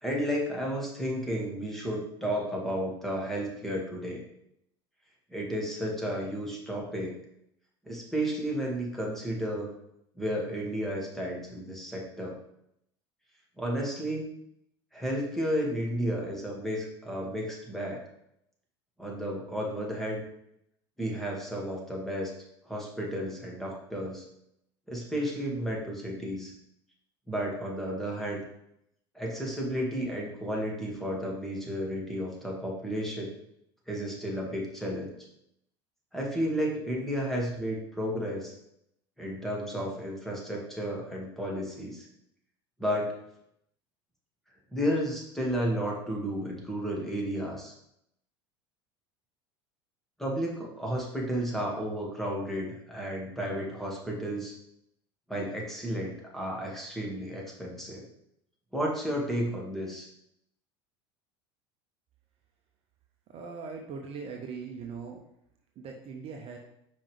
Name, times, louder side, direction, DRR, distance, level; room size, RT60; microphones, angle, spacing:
voice 1, 0.0-4.2 5.3-7.1 7.9-9.7 10.2-12.4 13.6-14.3 14.9-18.0 19.0-20.2 21.0-22.3 22.7-24.2 24.9-26.5 27.3-28.4 29.1-33.3 33.9-35.1 36.1-38.5 39.2-42.1 42.8-43.2 44.7-47.7 50.2-54.5 55.3-58.0 58.7-60.1, equal, ahead, -3 dB, 2.0 m, -32 dB
voice 2, 63.3-65.2 65.8-66.6, right 5 dB, 45° right, 2 dB, 0.9 m, -40 dB
5.4 x 5.2 x 3.4 m, 0.76 s
hypercardioid pair, 75°, 14 cm